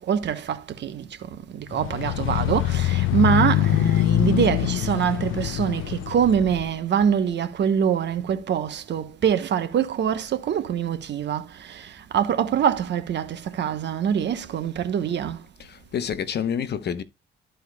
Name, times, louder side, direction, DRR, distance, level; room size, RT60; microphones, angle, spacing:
voice 1, 0.1-1.1 1.5-15.4, right 8 dB, 60° right, 1.2 m, -24 dB
sound 1, 1.7-6.7, left 14 dB, 85° left, 0.5 m, -24 dB
voice 2, 15.6-17.0, left 8 dB, 55° left, 1.0 m, -28 dB
13.5 x 4.6 x 2.3 m
cardioid pair, 90°, 20 cm